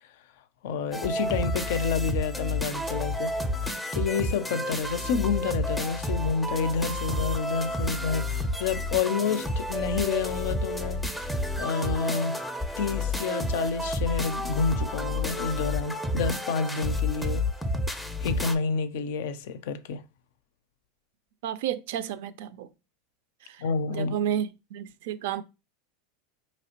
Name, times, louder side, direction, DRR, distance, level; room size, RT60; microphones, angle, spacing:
voice 1, 0.6-3.3 3.9-11.3 11.6-12.4 12.8-17.4 18.2-20.0 23.6-24.1, left 5 dB, 70° left, 0.4 m, -29 dB
sound 1, 0.9-18.5, left 1 dB, 5° left, 0.5 m, -30 dB
voice 2, 21.4-22.7 23.4-23.6 23.9-25.4, right 10 dB, 75° right, 0.4 m, -31 dB
4.2 x 3.0 x 2.9 m
supercardioid pair, 140°, 0 cm